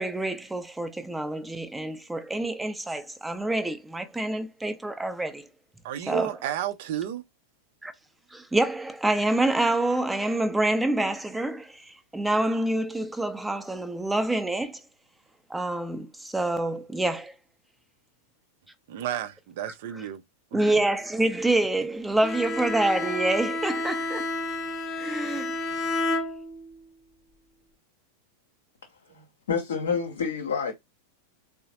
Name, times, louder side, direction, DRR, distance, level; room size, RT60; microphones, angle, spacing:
voice 1, 0.0-5.5 6.1-6.3 7.8-7.9 8.3-14.8 15.5-17.3 20.5-24.3 25.0-25.5, right 2 dB, 5° right, 0.6 m, -27 dB
voice 2, 5.8-7.2 18.9-20.2 20.5-20.8 29.2-29.3, right 11 dB, 50° right, 0.6 m, -32 dB
Bowed string instrument, 22.2-26.8, left 2 dB, 25° left, 0.8 m, -30 dB
voice 3, 29.5-30.7, left 6 dB, 65° left, 0.7 m, -27 dB
3.8 x 2.1 x 2.8 m
figure-of-eight pair, 90°, 0 cm